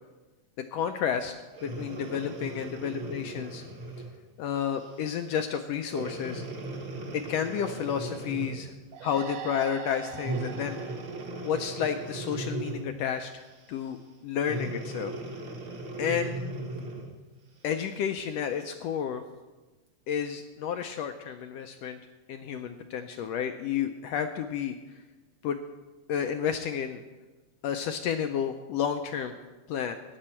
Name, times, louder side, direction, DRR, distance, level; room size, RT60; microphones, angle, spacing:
voice 1, 0.7-1.3 1.6-3.6 4.4-6.4 7.1-8.7 9.0-10.8 11.4-14.0 14.2-15.1 16.0-16.4 17.6-19.2 20.1-22.0 22.3-24.7 25.4-25.6 26.1-27.0 27.6-29.4 29.7-30.0, left 8 dB, 80° left, 7 dB, 1.5 m, -31 dB
Breathing, 1.5-4.2 4.8-5.0 5.9-8.7 10.2-13.0 14.4-17.2 17.8-17.9, right 2 dB, 45° right, 2.0 m, -37 dB
sound 1, 8.9-12.4, right 10 dB, 75° right, 1.8 m, -43 dB
14.5 x 9.8 x 4.4 m, 1.2 s
omnidirectional pair, 3.3 m